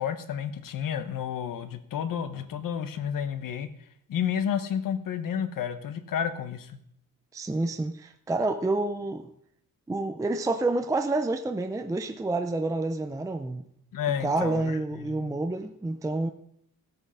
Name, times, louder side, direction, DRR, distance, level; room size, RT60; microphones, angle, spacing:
voice 1, 0.0-3.7 4.1-6.8 13.9-14.8 15.2-15.3, left 8 dB, 70° left, 1.2 m, -31 dB
voice 2, 7.3-9.3 9.9-13.6 14.1-16.3, right 2 dB, 10° right, 0.5 m, -28 dB
15.5 x 8.1 x 5.6 m
wide cardioid pair, 160°, 34 cm